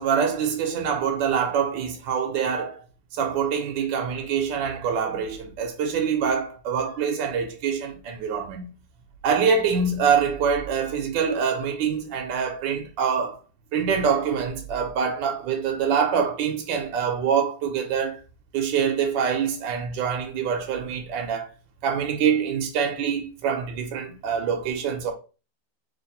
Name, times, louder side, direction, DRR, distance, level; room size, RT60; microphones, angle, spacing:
voice 1, 0.0-2.8 3.1-8.7 9.2-13.4 13.7-18.2 18.5-21.5 21.8-25.1, right 6 dB, 75° right, 1.3 m, -25 dB
3.2 x 2.9 x 4.0 m
omnidirectional pair, 2.0 m